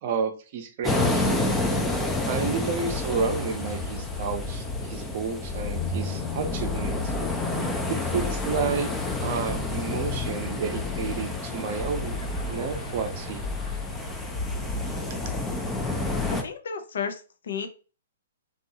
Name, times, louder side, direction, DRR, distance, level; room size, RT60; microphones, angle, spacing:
voice 1, 0.0-1.2 2.3-7.1 7.9-8.9 9.2-12.2 12.5-13.4, right 6 dB, 50° right, 5 dB, 0.6 m, -30 dB
sound 1, 0.8-16.4, left 2 dB, 10° left, 0.4 m, -31 dB
sound 2, 1.2-16.4, left 4 dB, 45° left, 1.0 m, -33 dB
voice 2, 16.3-17.7, left 6 dB, 70° left, 7 dB, 0.5 m, -33 dB
2.6 x 2.3 x 2.7 m, 0.35 s
hypercardioid pair, 135°, 0 cm